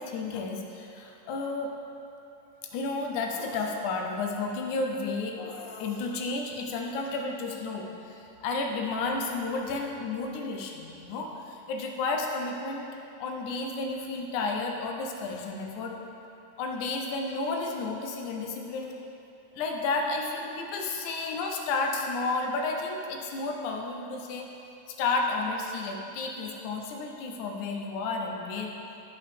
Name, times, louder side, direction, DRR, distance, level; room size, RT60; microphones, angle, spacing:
voice 1, 0.0-1.7 2.7-12.9 13.2-16.0 16.6-19.0 19.5-24.5 24.9-28.8, left 3 dB, 80° left, 1 dB, 2.1 m, -32 dB
11.5 x 5.7 x 3.4 m, 2.8 s
omnidirectional pair, 3.6 m